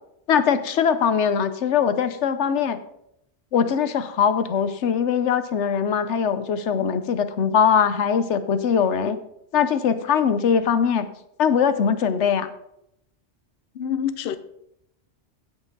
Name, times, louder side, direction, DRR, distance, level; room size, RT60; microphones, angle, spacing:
voice 1, 0.3-2.8 3.5-9.2 9.5-11.1 11.4-12.5, left 7 dB, 80° left, 1.1 m, -21 dB
voice 2, 13.7-14.4, left 8 dB, 65° left, 0.8 m, -26 dB
16.0 x 6.0 x 3.9 m
omnidirectional pair, 1.2 m